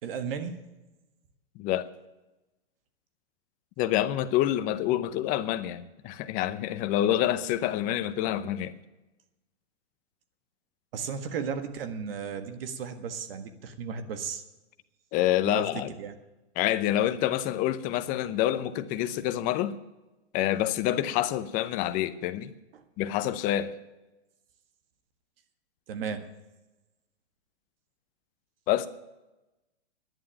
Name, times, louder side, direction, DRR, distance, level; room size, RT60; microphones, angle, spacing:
voice 1, 0.0-0.6 10.9-14.4 15.4-15.6 16.0-16.1 25.9-26.2, right 6 dB, 55° right, 9 dB, 1.7 m, -34 dB
voice 2, 1.6-1.9 3.8-8.7 15.1-15.9 16.6-19.7 20.3-22.5 23.0-23.7 28.7-28.9, left 13 dB, 25° left, 13 dB, 0.7 m, -27 dB
11.0 x 9.4 x 8.9 m, 1.0 s
hypercardioid pair, 145°, 34 cm